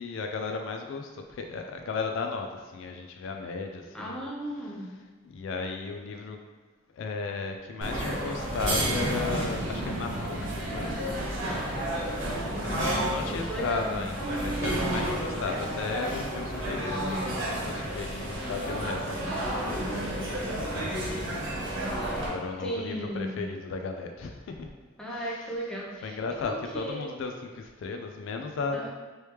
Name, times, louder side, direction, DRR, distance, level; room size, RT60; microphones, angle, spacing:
voice 1, 0.0-4.3 5.2-6.4 6.9-11.9 12.6-21.4 21.7-24.7 25.1-25.5 26.0-28.9, left 4 dB, 70° left, 4 dB, 0.3 m, -36 dB
voice 2, 3.9-4.9 12.5-14.0 22.6-23.5 25.0-27.1 28.7-28.9, equal, 5° left, -5 dB, 0.6 m, -36 dB
sound 1, 7.8-22.3, right 1 dB, 65° right, 1.0 m, -31 dB
sound 2, 8.7-14.2 14.7-14.8 18.7-19.8, right 1 dB, 90° right, 0.6 m, -39 dB
3.1 x 3.0 x 3.2 m, 1.3 s
head